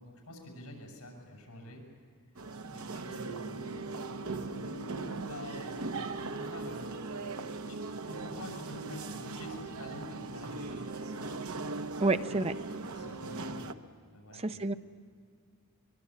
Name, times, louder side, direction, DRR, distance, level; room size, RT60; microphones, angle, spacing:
voice 1, 0.0-1.8 2.7-7.0 7.7-7.8 8.0-11.5 12.3-12.5 12.9-13.8 14.1-14.6, left 1 dB, 85° left, 1 dB, 7.1 m, -48 dB
sound 1, 2.4-13.7, right 3 dB, 75° right, 1.0 m, -39 dB
voice 2, 12.0-12.5 14.4-14.7, right 2 dB, 25° right, 10 dB, 0.6 m, -28 dB
23.5 x 23.0 x 8.4 m, 2.1 s
head